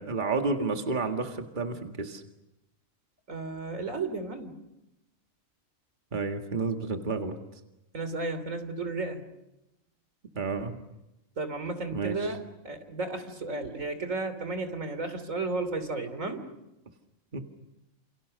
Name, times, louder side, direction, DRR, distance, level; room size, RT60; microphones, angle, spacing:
voice 1, 0.0-2.2 6.1-7.4 10.4-10.8 11.9-12.2 17.3-17.4, right 4 dB, 35° right, 4 dB, 2.0 m, -30 dB
voice 2, 3.3-4.5 7.9-9.2 11.4-16.4, right 3 dB, 80° right, 10 dB, 3.4 m, -33 dB
29.5 x 28.5 x 6.5 m, 0.93 s
omnidirectional pair, 1.4 m